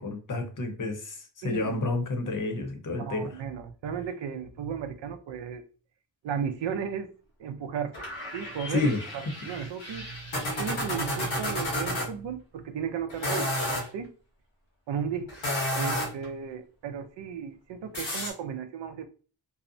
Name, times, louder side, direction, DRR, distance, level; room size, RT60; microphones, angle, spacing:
voice 1, 0.0-3.3 8.7-9.0, left 2 dB, 45° left, 0.8 m, -30 dB
voice 2, 1.4-1.8 3.0-5.6 6.2-7.1 7.4-8.1 8.3-13.5 13.9-14.1 14.9-15.3 15.7-19.1, right 7 dB, 70° right, 0.5 m, -35 dB
sound 1, 7.9-12.1 13.1-13.9 15.3-16.3 17.9-18.3, left 1 dB, 85° left, 1.2 m, -31 dB
2.7 x 2.0 x 2.5 m
cardioid pair, 55°, 46 cm